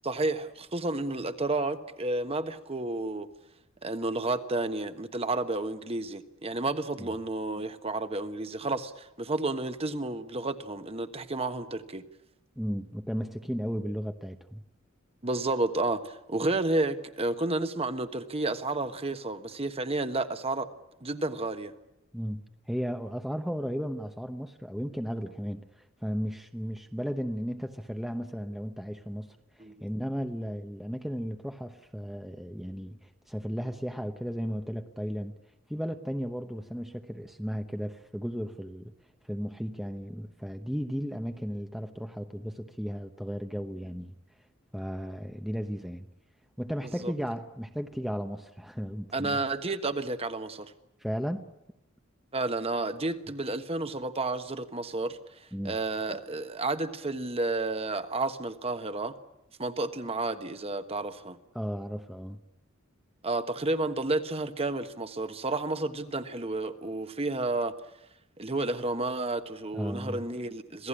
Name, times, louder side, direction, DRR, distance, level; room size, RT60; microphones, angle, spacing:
voice 1, 0.0-3.3 3.8-12.0 15.2-20.7 21.0-21.7 29.6-29.8 47.0-47.1 49.1-50.7 52.3-59.2 59.6-61.4 63.2-67.7 68.4-70.9, right 2 dB, 30° right, 9 dB, 1.2 m, -31 dB
voice 2, 12.6-14.6 22.1-35.3 35.7-38.9 39.3-44.2 44.7-46.1 46.6-49.4 51.0-51.5 55.5-55.8 61.5-62.4 69.7-70.2, equal, ahead, 6 dB, 0.9 m, -35 dB
26.5 x 17.0 x 9.9 m, 0.87 s
head